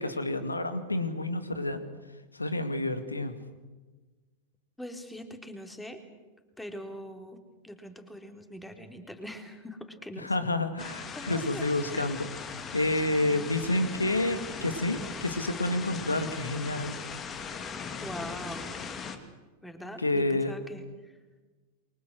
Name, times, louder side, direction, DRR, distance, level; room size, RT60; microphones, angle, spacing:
voice 1, 0.0-1.8 2.3-3.4 10.2-17.0 20.0-20.6, left 2 dB, 80° left, 10 dB, 2.3 m, -29 dB
voice 2, 4.8-6.0 6.6-10.3 11.2-11.6 11.9-12.2 13.2-13.5 18.0-18.7 19.6-20.8, equal, 5° left, 6 dB, 3.5 m, -42 dB
sound 1, 10.8-19.2, left 6 dB, 25° left, 2.6 m, -39 dB
28.5 x 24.0 x 6.4 m, 1.2 s
figure-of-eight pair, 90°, 0 cm